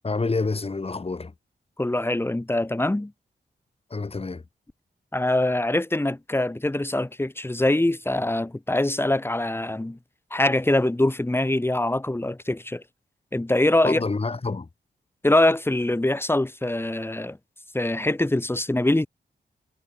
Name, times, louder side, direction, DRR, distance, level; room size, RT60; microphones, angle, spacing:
voice 1, 0.0-1.3 3.9-4.4 13.8-14.7, left 3 dB, 35° left, 7.4 m, -27 dB
voice 2, 1.8-3.1 5.1-10.0 10.3-12.8 13.3-14.0 15.2-17.4 17.7-19.1, left 1 dB, 15° left, 3.7 m, -23 dB
wide cardioid pair, 130°, 18 cm